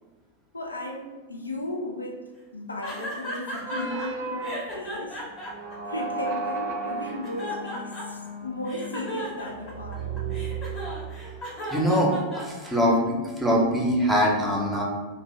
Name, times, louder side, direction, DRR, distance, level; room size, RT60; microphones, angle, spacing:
voice 1, 0.5-5.2 5.9-10.1, left 1 dB, 80° left, 1 dB, 0.3 m, -35 dB
sound 1, 2.8-4.1 4.4-6.6 7.0-8.3 8.6-12.9, equal, 30° left, 0.8 m, -36 dB
sound 2, 3.6-11.4, right 4 dB, 45° right, 0.3 m, -34 dB
voice 2, 11.7-13.0 13.4-14.8, equal, 5° right, -3 dB, 0.6 m, -22 dB
2.4 x 2.2 x 3.1 m, 1.3 s
figure-of-eight pair, 90°, 0 cm